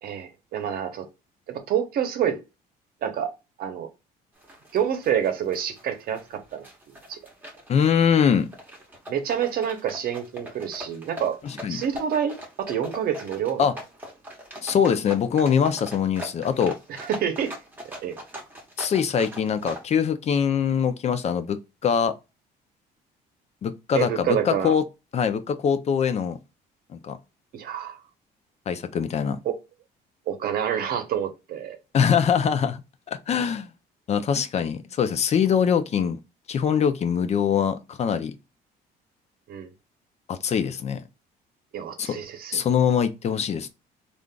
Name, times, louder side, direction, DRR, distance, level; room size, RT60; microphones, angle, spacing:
voice 1, 0.0-1.1 1.5-2.4 3.0-3.3 3.6-3.9 4.7-6.7 7.1-7.2 9.1-11.4 11.7-13.7 16.9-17.5 18.0-18.2 23.9-24.7 27.5-28.0 29.4-29.6 30.3-31.8 39.5-39.7 41.7-42.6, right 9 dB, 60° right, 0.8 m, -27 dB
sound 1, 4.4-19.8, equal, 10° right, 1.1 m, -41 dB
voice 2, 7.7-8.5 11.4-11.8 13.6-13.7 14.6-16.7 18.8-22.1 23.6-24.8 25.1-26.4 26.9-27.2 28.7-29.4 31.9-32.8 33.1-33.7 34.1-36.2 36.5-38.3 40.3-41.0 42.0-42.2 42.5-43.7, left 7 dB, 40° left, 0.5 m, -23 dB
3.6 x 2.5 x 2.2 m
cardioid pair, 110°, 17 cm